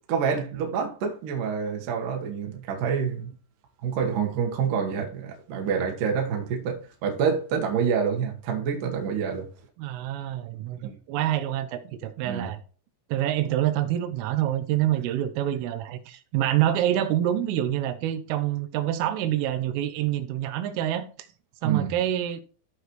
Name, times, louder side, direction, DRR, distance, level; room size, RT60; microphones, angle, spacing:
voice 1, 0.1-3.3 3.8-9.5 10.8-11.0 12.2-12.5 21.6-21.9, right 6 dB, 65° right, 2.2 m, -27 dB
voice 2, 9.8-12.6 13.1-21.1 21.6-22.4, right 12 dB, 80° right, 3.3 m, -26 dB
14.5 x 4.9 x 3.1 m
omnidirectional pair, 5.8 m